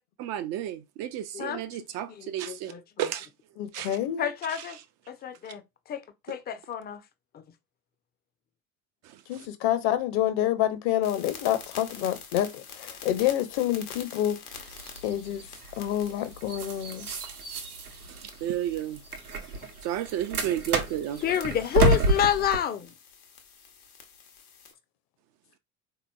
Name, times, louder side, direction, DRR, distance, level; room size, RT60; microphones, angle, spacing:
voice 1, 0.2-2.7 3.0-3.3 3.7-4.0 4.5-4.8 9.0-9.5 18.0-19.0 19.8-21.2, right 11 dB, 40° right, 0.4 m, -32 dB
voice 2, 2.2-2.8 4.2-4.8 5.1-5.6 5.9-6.0 6.3-7.0 7.3-7.4 21.2-22.9, left 9 dB, 25° left, 0.5 m, -28 dB
voice 3, 3.6-4.3 9.3-14.4 15.0-15.5 15.8-17.1, left 12 dB, 50° left, 0.8 m, -27 dB
sound 1, 11.0-24.7, left 6 dB, 80° left, 1.0 m, -48 dB
sound 2, 14.5-22.6, right 2 dB, 85° right, 0.9 m, -30 dB
3.8 x 3.0 x 2.3 m
figure-of-eight pair, 70°, 44 cm